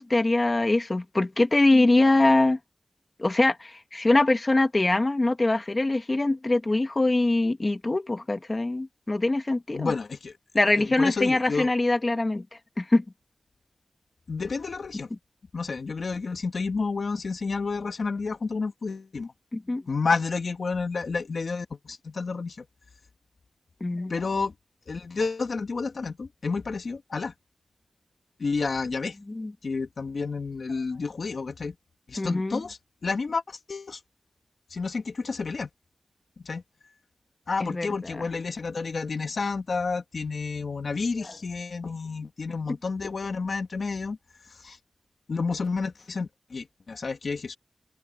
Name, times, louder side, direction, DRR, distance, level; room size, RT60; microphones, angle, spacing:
voice 1, 0.0-2.6 3.2-9.9 10.5-12.4 12.8-13.0 19.5-19.8 23.8-24.1 29.3-29.5 32.2-32.6 37.6-37.9, left 2 dB, 30° left, 1.8 m, -23 dB
voice 2, 9.7-10.4 10.7-11.7 14.3-15.1 15.5-19.3 19.9-22.7 24.1-24.5 24.9-27.3 28.4-29.2 29.6-31.8 32.1-34.0 34.7-35.7 36.4-36.6 37.5-44.2 44.5-44.8 45.3-47.6, left 4 dB, 65° left, 1.6 m, -30 dB
wide cardioid pair, 120°, 0 cm